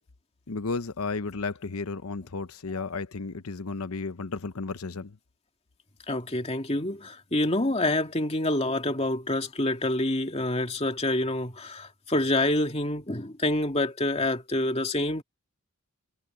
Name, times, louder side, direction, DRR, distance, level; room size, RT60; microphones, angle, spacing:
voice 1, 0.5-5.2, left 4 dB, 80° left, 0.8 m, -33 dB
voice 2, 6.1-15.2, left 1 dB, 30° left, 2.4 m, -27 dB
head